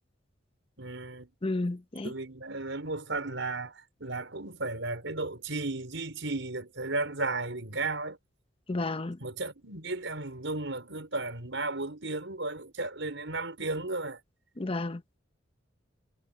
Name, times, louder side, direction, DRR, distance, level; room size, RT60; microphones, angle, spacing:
voice 1, 0.8-1.3 2.0-8.2 9.2-14.2, right 2 dB, 85° right, 4.8 m, -34 dB
voice 2, 1.4-2.1 8.7-9.2 14.6-15.0, left 2 dB, 30° left, 0.8 m, -31 dB
head